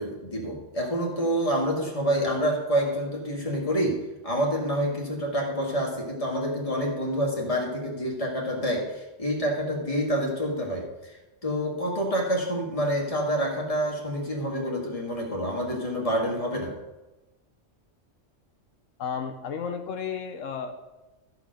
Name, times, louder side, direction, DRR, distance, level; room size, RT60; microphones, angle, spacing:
voice 1, 0.0-16.7, equal, 25° left, -1 dB, 1.9 m, -27 dB
voice 2, 19.0-20.8, left 6 dB, 85° left, 6 dB, 1.1 m, -33 dB
13.5 x 4.8 x 6.3 m, 1.1 s
omnidirectional pair, 1.3 m